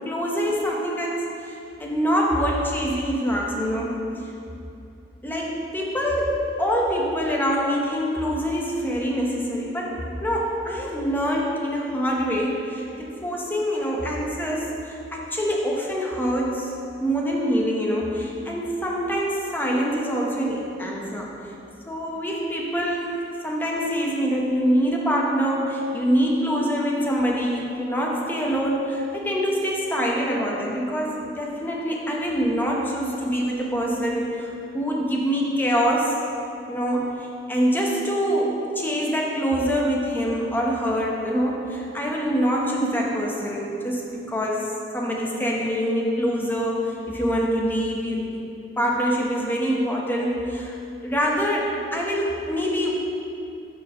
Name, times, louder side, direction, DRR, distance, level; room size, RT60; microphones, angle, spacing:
voice 1, 0.0-1.5 1.8-4.0 5.2-16.7 17.0-21.4 21.9-36.1 36.7-50.8 51.0-52.9, equal, 10° left, -2 dB, 0.8 m, -25 dB
5.4 x 4.4 x 5.4 m, 2.7 s
head